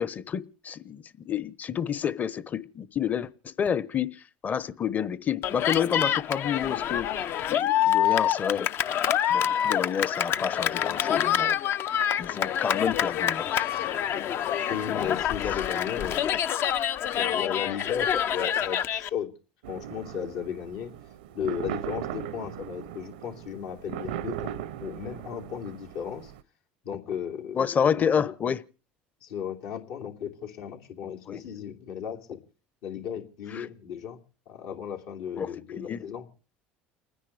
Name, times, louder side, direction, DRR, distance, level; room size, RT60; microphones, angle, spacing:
voice 1, 0.0-7.1 7.5-8.7 9.3-11.6 12.2-13.7 15.0-15.2 27.5-28.6 31.3-31.4 33.5-33.7 35.4-35.5 35.8-36.0, left 8 dB, 35° left, 1.0 m, -29 dB
Cheering, 5.4-19.1, left 10 dB, 55° left, 0.6 m, -27 dB
voice 2, 14.7-16.4 17.1-19.3 19.7-20.9 21.3-26.3 26.8-28.3 29.2-32.4 32.8-34.2 34.5-36.3, left 8 dB, 75° left, 3.0 m, -35 dB
sound 1, 19.6-26.4, right 11 dB, 85° right, 0.7 m, -38 dB
29.5 x 10.0 x 3.5 m
supercardioid pair, 90°, 5 cm